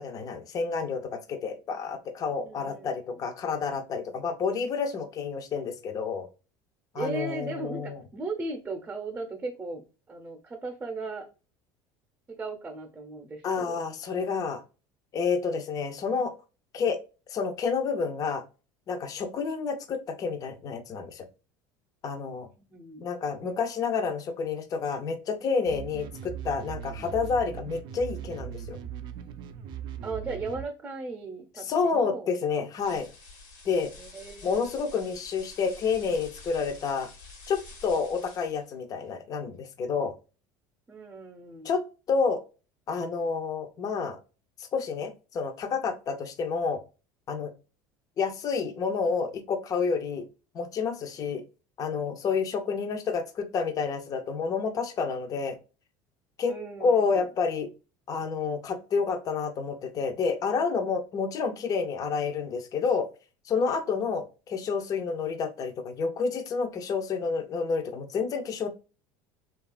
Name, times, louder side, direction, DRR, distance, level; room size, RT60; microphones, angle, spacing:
voice 1, 0.0-6.3 6.9-8.0 13.4-14.6 15.1-16.3 16.7-17.0 17.3-18.4 18.9-21.2 22.0-22.5 23.0-28.8 31.6-33.1 33.7-33.9 34.4-37.1 37.5-40.1 41.6-42.4 42.9-44.2 44.7-46.8 47.3-47.5 48.2-50.3 50.5-51.4 51.8-55.6 56.4-56.5 56.8-57.7 58.1-63.1 63.5-68.7, left 5 dB, 40° left, 7 dB, 0.5 m, -29 dB
voice 2, 2.4-3.2 6.9-9.8 10.1-11.3 12.4-13.8 22.5-23.1 30.0-32.3 34.0-34.7 40.9-41.7 56.5-57.2, right 3 dB, 20° right, 2 dB, 0.7 m, -37 dB
sound 1, 25.7-30.6, right 9 dB, 55° right, 0.4 m, -39 dB
sound 2, 32.8-38.7, left 3 dB, 90° left, 1.1 m, -48 dB
2.7 x 2.3 x 2.2 m, 0.32 s
supercardioid pair, 100°, 10 cm